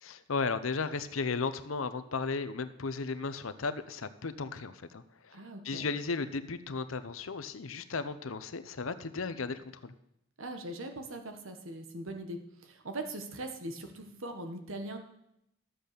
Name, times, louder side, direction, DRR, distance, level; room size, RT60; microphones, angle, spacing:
voice 1, 0.0-5.4 5.6-9.9, left 4 dB, 90° left, 12 dB, 0.8 m, -35 dB
voice 2, 5.3-5.8 10.4-15.0, right 1 dB, 80° right, 5 dB, 1.4 m, -41 dB
12.5 x 8.0 x 6.7 m, 0.80 s
head